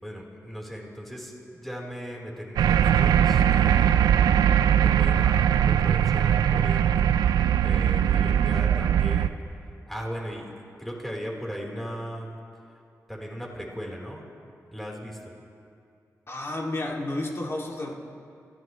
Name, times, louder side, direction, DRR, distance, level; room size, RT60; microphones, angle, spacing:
voice 1, 0.0-4.2 4.7-9.3 9.9-10.5 10.8-12.4 13.1-14.2 14.7-15.3, equal, 5° left, -2 dB, 3.9 m, -37 dB
sound 1, 2.6-9.3, right 9 dB, 90° right, 0.4 m, -21 dB
voice 2, 8.1-8.4 16.3-17.9, left 2 dB, 40° left, -1 dB, 2.5 m, -32 dB
26.0 x 15.5 x 3.2 m, 2.5 s
cardioid pair, 45°, 6 cm